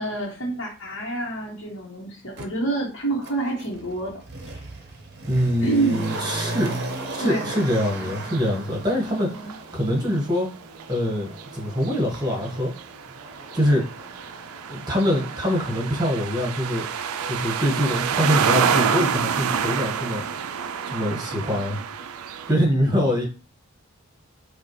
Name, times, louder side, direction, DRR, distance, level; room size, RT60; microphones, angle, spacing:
voice 1, 0.0-4.2 4.5-4.6 5.6-6.1 7.2-7.5 8.2-8.3 9.2-9.5, right 2 dB, 55° left, -5 dB, 1.2 m, -28 dB
Motor vehicle (road), 2.4-2.5 3.2-16.1 16.4-16.5, right 2 dB, 50° right, 0.7 m, -37 dB
voice 2, 5.2-6.7 7.1-10.5 10.9-12.7 13.5-13.8 14.7-16.9 17.2-20.2 20.9-21.8 22.5-23.3, equal, 20° right, 0 dB, 1.3 m, -24 dB
sound 1, 5.9-6.3 6.5-7.3 7.6-22.5, right 7 dB, 85° right, 0.4 m, -29 dB
5.4 x 2.4 x 3.1 m, 0.34 s
head